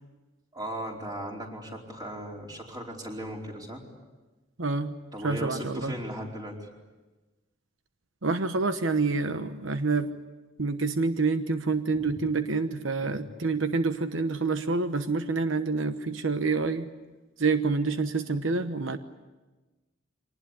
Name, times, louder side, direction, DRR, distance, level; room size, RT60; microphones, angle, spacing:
voice 1, 0.5-3.8 5.1-6.7 11.9-12.2 13.0-13.2, right 1 dB, 20° right, -1 dB, 4.7 m, -37 dB
voice 2, 4.6-4.9 5.2-5.9 8.2-10.1 10.6-16.9 17.4-19.0, right 3 dB, 85° right, 9 dB, 1.1 m, -27 dB
25.0 x 19.5 x 9.9 m, 1.2 s
head